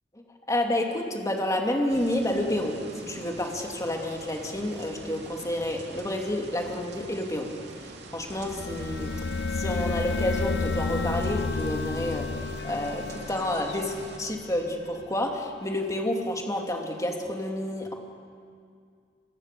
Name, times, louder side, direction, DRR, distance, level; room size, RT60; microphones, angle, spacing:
voice 1, 0.5-7.5 7.8-17.9, left 1 dB, 20° left, 1 dB, 2.7 m, -30 dB
sound 1, 1.9-14.2, right 2 dB, 70° right, 2.8 m, -45 dB
sound 2, 8.3-15.0, left 4 dB, 70° left, 0.7 m, -31 dB
29.0 x 24.0 x 6.9 m, 2.2 s
head